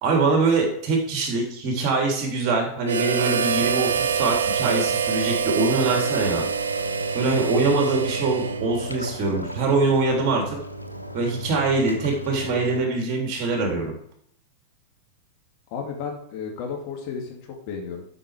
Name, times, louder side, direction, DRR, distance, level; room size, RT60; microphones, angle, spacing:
voice 1, 0.0-6.5 7.1-10.6 11.1-13.9, right 3 dB, 40° right, 1 dB, 3.2 m, -23 dB
Harmonica, 2.8-8.9, right 7 dB, 70° right, 0.6 m, -26 dB
sound 1, 3.4-12.8, equal, 90° right, 0.9 m, -35 dB
voice 2, 15.7-17.4 17.7-18.0, left 6 dB, 45° left, 1 dB, 2.6 m, -32 dB
12.0 x 5.9 x 5.0 m, 0.67 s
figure-of-eight pair, 90°, 0 cm